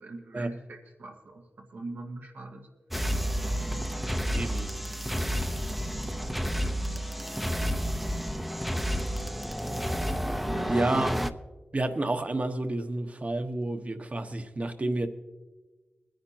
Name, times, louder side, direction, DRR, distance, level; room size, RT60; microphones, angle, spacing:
voice 1, 0.0-1.4 1.7-2.7 3.3-3.8 10.4-10.9, right 2 dB, 85° right, 0 dB, 1.9 m, -42 dB
sound 1, 2.9-11.3, equal, 5° right, 0.8 m, -30 dB
voice 2, 4.3-4.7 10.7-11.1 11.7-15.1, right 2 dB, 45° right, 7 dB, 1.3 m, -30 dB
22.0 x 10.5 x 2.9 m, 1.2 s
cardioid pair, 45°, 3 cm